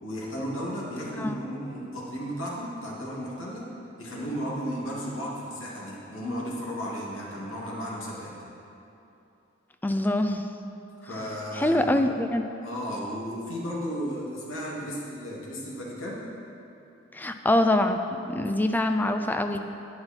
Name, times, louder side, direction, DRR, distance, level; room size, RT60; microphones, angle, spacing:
voice 1, 0.0-3.7 4.0-8.3 11.0-12.0 12.6-16.2, equal, 85° left, -5 dB, 2.4 m, -34 dB
voice 2, 9.8-10.4 11.5-12.4 17.1-19.6, left 1 dB, 10° left, 6 dB, 0.4 m, -24 dB
10.5 x 9.6 x 4.4 m, 2.8 s
head